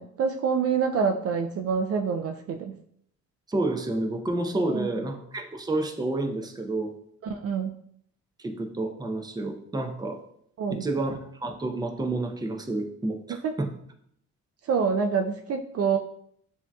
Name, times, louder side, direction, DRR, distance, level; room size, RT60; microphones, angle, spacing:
voice 1, 0.0-2.8 4.7-5.0 7.2-7.8 10.6-10.8 13.4-13.6 14.6-16.0, right 6 dB, 55° right, 5 dB, 0.4 m, -26 dB
voice 2, 3.5-6.9 8.4-10.2 10.7-13.7, right 2 dB, 15° right, 4 dB, 0.6 m, -29 dB
7.0 x 2.8 x 2.3 m, 0.67 s
cardioid pair, 90°, 30 cm